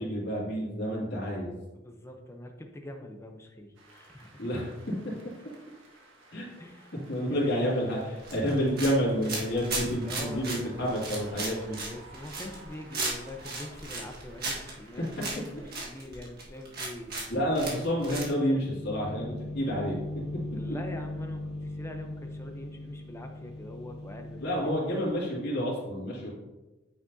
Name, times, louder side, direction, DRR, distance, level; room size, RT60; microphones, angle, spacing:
voice 1, 0.0-1.5 4.4-4.8 6.3-6.4 7.1-11.8 17.3-20.0 24.4-26.3, equal, 60° left, -6 dB, 2.4 m, -29 dB
voice 2, 1.7-4.4 6.6-6.9 7.3-7.5 10.0-11.0 11.5-17.1 20.5-24.7, left 1 dB, 15° left, 3 dB, 0.7 m, -43 dB
sound 1, 3.7-15.7, right 2 dB, 75° right, 1.5 m, -54 dB
sound 2, 8.2-18.3, right 3 dB, 55° right, 1.6 m, -36 dB
sound 3, 18.5-24.8, left 1 dB, 10° right, 1.9 m, -39 dB
9.1 x 5.9 x 2.7 m, 1.1 s
head